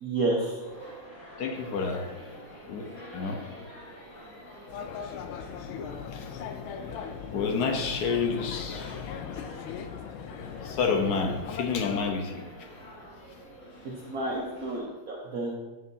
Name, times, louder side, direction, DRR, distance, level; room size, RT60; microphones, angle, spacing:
voice 1, 0.0-0.6 14.1-15.6, right 2 dB, 55° right, -3 dB, 1.1 m, -30 dB
sound 1, 0.6-14.8, equal, 40° left, 2.1 m, -47 dB
voice 2, 1.4-2.0 2.6-2.8 3.1-3.4 6.1-6.3 7.3-9.0 10.6-12.4, left 5 dB, 60° left, 3 dB, 1.2 m, -29 dB
sound 2, 4.7-12.1, left 7 dB, 80° left, 1.4 m, -38 dB
8.1 x 7.6 x 2.7 m, 1.2 s
omnidirectional pair, 2.3 m